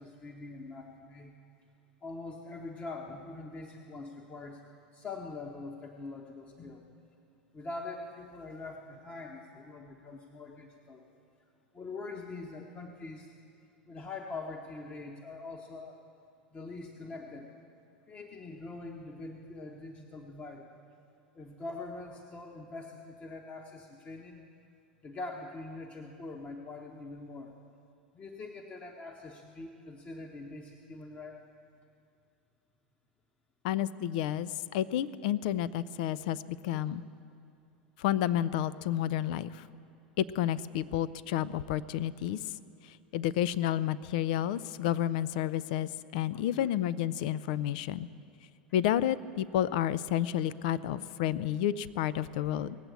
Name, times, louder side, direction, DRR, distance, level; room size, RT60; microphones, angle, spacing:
voice 1, 0.0-1.4 2.0-4.6 4.9-6.9 7.5-11.1 11.7-13.3 13.9-16.0 16.5-17.5 18.1-20.7 21.3-24.4 25.0-27.5 28.1-31.4 36.7-36.8 46.3-46.7 49.7-49.8, left 3 dB, 25° left, 1 dB, 1.1 m, -43 dB
voice 2, 33.6-37.0 38.0-39.6 40.2-42.5 42.8-48.1 48.7-52.8, left 11 dB, 60° left, 18 dB, 0.4 m, -30 dB
18.5 x 7.9 x 8.1 m, 2.6 s
figure-of-eight pair, 85°, 5 cm